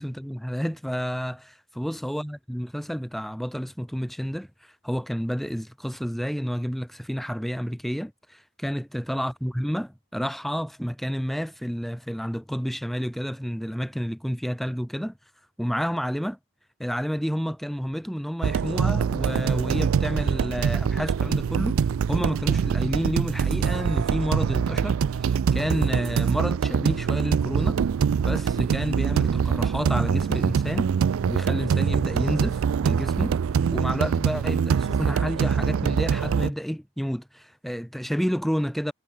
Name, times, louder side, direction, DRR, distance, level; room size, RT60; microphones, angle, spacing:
voice 1, 0.0-4.5 4.8-15.1 15.6-16.4 16.8-27.8 28.2-30.9 31.3-33.3 33.7-38.9, equal, ahead, 1.2 m, -30 dB
sound 1, 18.4-36.5, right 7 dB, 80° right, 0.4 m, -24 dB
head